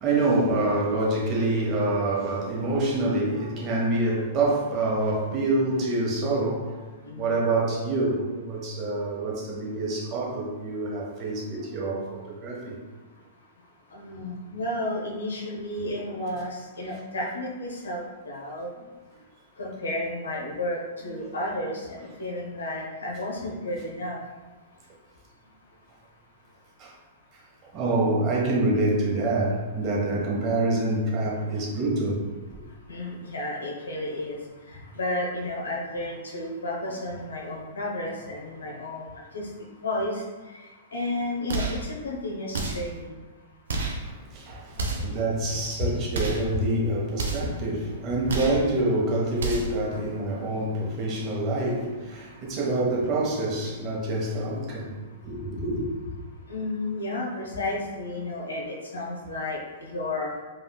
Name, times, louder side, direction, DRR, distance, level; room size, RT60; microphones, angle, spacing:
voice 1, 0.0-12.8 26.8-26.9 27.7-32.6 44.0-55.8, right 2 dB, 35° right, -3 dB, 0.9 m, -26 dB
voice 2, 7.1-7.4 13.9-18.7 19.6-24.2 32.9-34.4 34.9-39.1 39.3-39.5 39.8-40.2 40.9-43.1 45.8-46.0 49.9-50.1 56.5-59.6 59.9-60.3, left 1 dB, 85° left, -2 dB, 0.7 m, -32 dB
sound 1, 41.5-41.9 42.5-42.9 43.7-44.0 44.7-45.2 46.1-46.5 47.2-47.6 48.3-48.7 49.4-49.8, right 3 dB, 75° right, 0.5 m, -30 dB
3.6 x 2.4 x 2.2 m, 1.3 s
hypercardioid pair, 115°, 0 cm